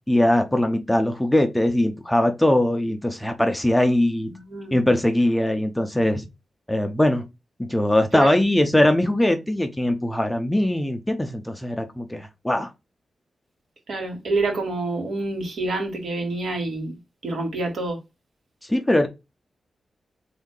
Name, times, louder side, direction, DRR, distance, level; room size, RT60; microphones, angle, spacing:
voice 1, 0.1-4.3 4.7-6.3 6.7-7.3 7.6-12.7 18.6-19.1, left 1 dB, 5° left, 0.5 m, -21 dB
voice 2, 4.3-4.8 8.1-8.4 13.9-18.0, right 2 dB, 70° right, 1.7 m, -28 dB
3.5 x 2.7 x 3.7 m
wide cardioid pair, 170°, 0 cm